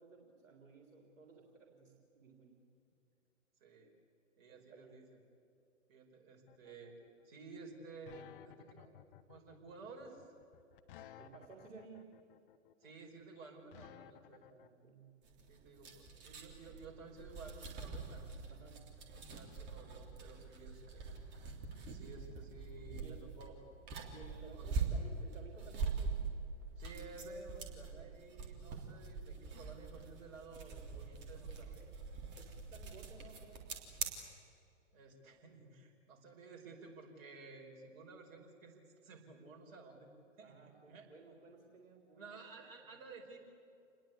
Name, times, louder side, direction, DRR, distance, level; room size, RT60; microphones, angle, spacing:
voice 1, 0.0-2.6 4.5-5.0 11.2-12.1 14.5-15.1 18.5-18.8 22.9-23.3 24.1-26.3 31.8-31.9 32.4-33.7 40.4-42.6, right 4 dB, 70° right, 2 dB, 3.7 m, -57 dB
voice 2, 4.4-5.2 5.9-6.9 7.2-9.0 9.3-10.3 12.8-14.4 15.5-18.4 19.1-21.1 21.9-23.6 24.1-24.7 26.8-31.8 34.2-34.3 34.9-40.1 40.4-41.1 42.2-43.4, right 3 dB, 45° right, 1 dB, 5.2 m, -54 dB
sound 1, 6.5-14.7, left 12 dB, 40° left, 1.2 m, -57 dB
sound 2, 15.2-34.1, right 4 dB, 25° right, 3.4 m, -44 dB
28.0 x 21.0 x 8.5 m, 2.6 s
figure-of-eight pair, 115°, 39 cm